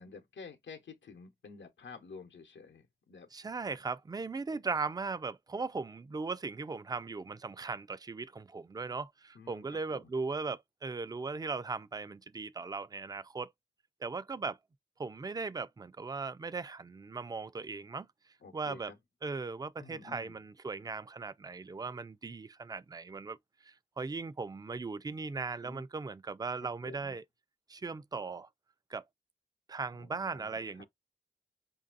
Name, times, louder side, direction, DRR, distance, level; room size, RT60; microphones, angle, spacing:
voice 1, 0.0-3.3 9.3-10.1 18.4-19.0 19.8-20.4 25.6-25.8 26.6-27.2 29.9-30.9, left 4 dB, 85° left, 0.8 m, -51 dB
voice 2, 3.3-13.5 14.0-14.6 15.0-18.1 18.5-18.9 19.2-23.4 23.6-27.2 27.7-28.5 28.9-29.0 29.7-30.8, right 4 dB, 20° right, 0.3 m, -38 dB
5.1 x 2.6 x 2.4 m
wide cardioid pair, 80°, 19 cm